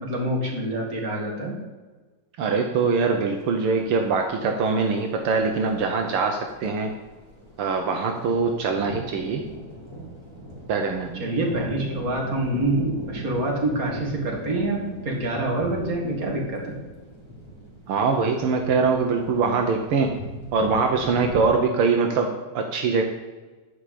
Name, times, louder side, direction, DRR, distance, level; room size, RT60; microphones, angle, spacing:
voice 1, 0.0-1.5 11.1-16.7, right 1 dB, 30° right, 0 dB, 2.4 m, -26 dB
voice 2, 2.4-6.9 7.6-9.4 10.7-11.2 17.9-20.1 20.5-23.0, right 4 dB, 75° right, 3 dB, 1.3 m, -23 dB
sound 1, 3.4-21.4, equal, 10° right, 2.0 m, -40 dB
12.5 x 5.1 x 8.5 m, 1.3 s
omnidirectional pair, 3.7 m